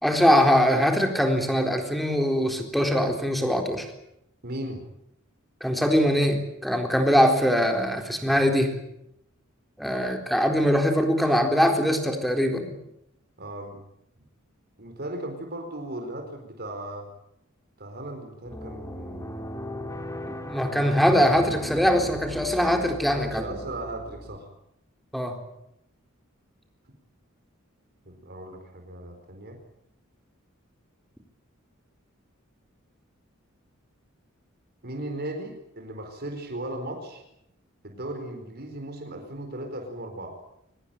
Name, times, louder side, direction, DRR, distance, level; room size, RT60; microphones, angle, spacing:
voice 1, 0.0-3.9 5.6-8.7 9.8-12.7 20.3-23.5 25.1-25.4, equal, ahead, 5 dB, 4.0 m, -22 dB
voice 2, 4.4-4.9 13.4-13.8 14.8-17.1 17.8-19.4 23.1-24.5 28.1-29.6 34.8-37.2 37.8-40.4, right 1 dB, 50° right, 4 dB, 4.4 m, -37 dB
sound 1, 18.4-24.4, left 1 dB, 15° left, 2.2 m, -37 dB
23.5 x 20.5 x 9.1 m, 0.78 s
head